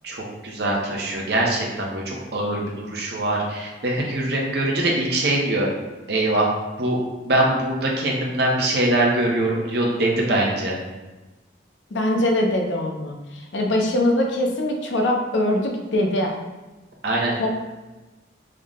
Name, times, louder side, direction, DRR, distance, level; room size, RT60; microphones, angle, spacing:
voice 1, 0.0-5.7 6.1-6.5 6.8-7.0 7.3-10.8 17.0-17.5, right 1 dB, 60° right, -2 dB, 0.6 m, -23 dB
voice 2, 11.9-16.3 17.3-17.5, left 1 dB, 80° left, 1 dB, 0.6 m, -22 dB
3.6 x 2.1 x 3.6 m, 1.1 s
head